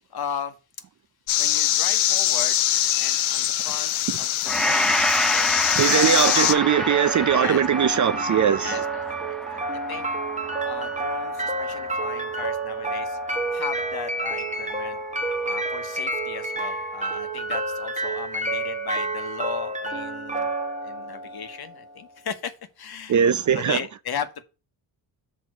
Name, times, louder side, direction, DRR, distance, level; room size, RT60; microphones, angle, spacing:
voice 1, 0.1-0.5 1.4-2.6 3.0-6.4 7.3-7.6 8.6-10.1 10.6-13.2 13.5-15.0 15.4-20.5 20.8-23.2 23.5-24.4, left 7 dB, 50° left, 1.2 m, -36 dB
sound 1, 1.3-6.5, left 12 dB, 80° left, 0.8 m, -23 dB
Gong, 4.5-12.8 13.2-13.4, left 1 dB, ahead, 0.6 m, -29 dB
voice 2, 5.8-8.8 23.1-23.8, right 8 dB, 40° right, 0.5 m, -20 dB
sound 2, 5.9-21.9, right 2 dB, 15° right, 1.3 m, -29 dB
6.5 x 3.8 x 6.0 m
cardioid pair, 90°, 47 cm